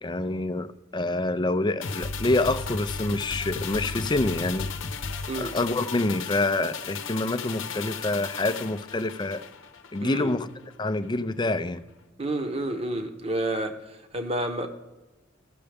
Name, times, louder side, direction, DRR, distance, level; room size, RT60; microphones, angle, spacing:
voice 1, 0.0-4.7 5.4-9.4 9.9-10.5 10.8-11.8, left 2 dB, 25° left, 0.5 m, -27 dB
sound 1, 1.8-10.4 10.7-10.8, left 5 dB, 75° left, 0.8 m, -35 dB
voice 2, 10.0-10.4 12.2-13.8 14.1-14.7, right 1 dB, 30° right, 1.0 m, -29 dB
15.5 x 6.7 x 3.4 m
head